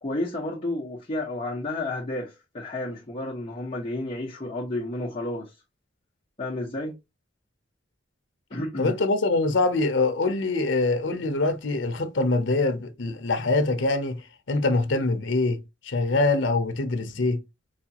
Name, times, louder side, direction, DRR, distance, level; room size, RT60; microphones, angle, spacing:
voice 1, 0.0-5.5 6.4-7.0 8.5-8.9, left 1 dB, 30° left, 0.9 m, -31 dB
voice 2, 8.8-14.2 14.5-17.4, left 3 dB, 80° left, 0.7 m, -24 dB
5.0 x 2.4 x 2.8 m
head